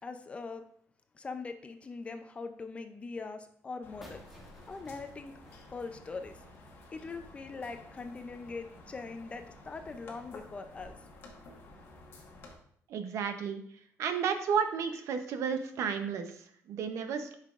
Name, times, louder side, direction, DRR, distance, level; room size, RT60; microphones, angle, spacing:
voice 1, 0.0-0.6 1.1-4.4 4.7-5.3 5.7-6.4 6.9-11.0, left 4 dB, 20° left, 8 dB, 0.4 m, -42 dB
sound 1, 3.8-12.6, left 2 dB, 45° left, 1.3 m, -52 dB
sound 2, 4.0-6.7, equal, 5° right, 1.1 m, -55 dB
voice 2, 12.9-13.6 14.0-17.4, right 6 dB, 65° right, 8 dB, 0.7 m, -32 dB
8.7 x 5.7 x 2.4 m, 0.63 s
cardioid pair, 170°, 6 cm